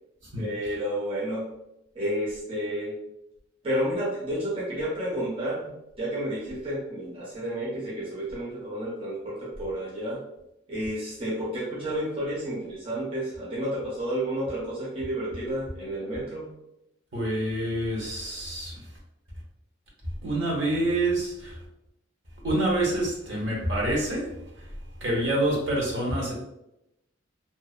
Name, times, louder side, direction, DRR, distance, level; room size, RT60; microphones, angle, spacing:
voice 1, 0.4-1.5 2.0-2.9 3.6-5.7 6.0-10.2 10.7-16.5, equal, 30° right, -7 dB, 0.6 m, -31 dB
voice 2, 17.1-18.8 20.2-21.5 22.4-24.3 25.0-26.3, right 1 dB, 65° right, -4 dB, 0.9 m, -27 dB
2.6 x 2.0 x 2.3 m, 0.86 s
head